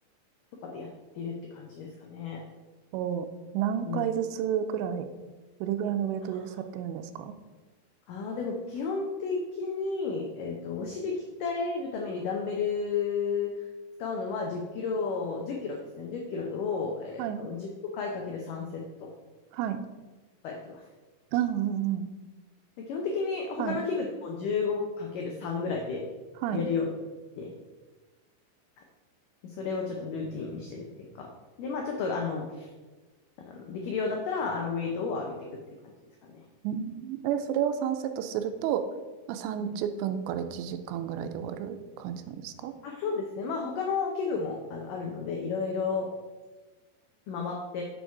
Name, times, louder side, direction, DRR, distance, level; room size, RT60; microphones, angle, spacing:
voice 1, 1.2-2.4 3.9-4.1 6.5-6.6 8.1-13.5 14.0-17.7 17.9-19.1 20.4-20.8 22.9-26.0 26.5-26.9 27.4-27.5 29.6-30.8 31.2-31.3 31.6-32.7 33.5-35.4 36.3-36.4 39.6-39.7 42.8-46.1 47.3-47.8, left 4 dB, 85° left, 1 dB, 1.8 m, -32 dB
voice 2, 2.9-3.3 3.5-5.1 5.6-7.3 17.2-17.4 19.5-19.8 21.3-22.1 23.6-23.8 26.4-26.6 36.6-38.8 39.3-42.8, right 9 dB, 90° right, 9 dB, 2.9 m, -31 dB
6.9 x 6.4 x 4.6 m, 1.2 s
omnidirectional pair, 4.9 m